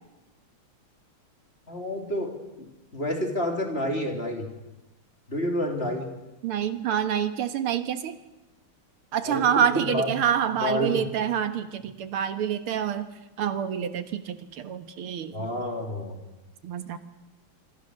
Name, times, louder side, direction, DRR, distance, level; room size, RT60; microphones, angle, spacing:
voice 1, 1.7-2.4 2.9-4.5 5.3-6.1 9.2-10.1 10.6-11.0 15.3-16.2, equal, 25° left, 3 dB, 3.7 m, -29 dB
voice 2, 6.4-8.2 9.1-13.1 13.4-15.5 16.6-17.0, right 9 dB, 85° right, 10 dB, 2.2 m, -27 dB
26.0 x 25.0 x 6.5 m, 1.0 s
omnidirectional pair, 2.3 m